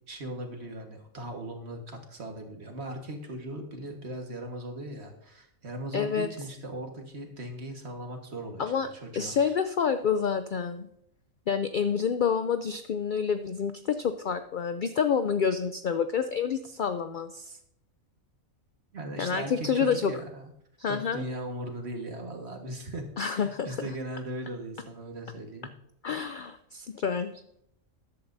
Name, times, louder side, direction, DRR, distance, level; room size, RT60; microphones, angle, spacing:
voice 1, 0.1-9.5 18.9-20.5 20.8-23.1 23.3-25.7, right 1 dB, 50° right, 3 dB, 1.7 m, -38 dB
voice 2, 5.9-6.3 8.6-10.9 11.5-17.6 19.2-20.1 20.8-21.2 23.2-23.8 26.0-27.3, left 6 dB, 75° left, 10 dB, 0.4 m, -28 dB
13.5 x 10.5 x 2.6 m, 0.74 s
omnidirectional pair, 1.4 m